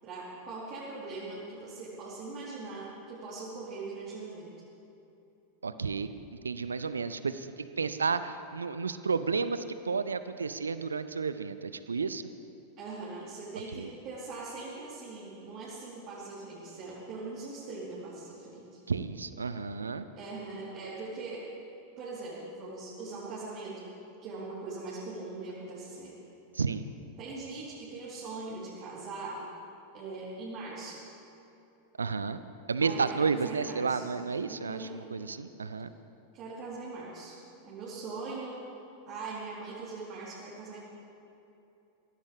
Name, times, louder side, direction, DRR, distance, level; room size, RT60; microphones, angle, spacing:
voice 1, 0.0-4.5 12.8-18.8 20.2-21.4 22.0-23.9 24.2-26.2 27.2-29.4 29.9-31.0 32.8-34.1 34.4-35.0 36.3-37.4 37.6-38.6 39.0-40.8, right 3 dB, 35° right, -8 dB, 4.0 m, -41 dB
voice 2, 5.6-6.1 6.4-12.2 13.7-13.9 18.9-20.1 26.5-26.9 32.0-32.4 32.7-35.9, right 5 dB, 75° right, 12 dB, 0.5 m, -32 dB
24.0 x 16.5 x 3.6 m, 2.9 s
figure-of-eight pair, 90°, 0 cm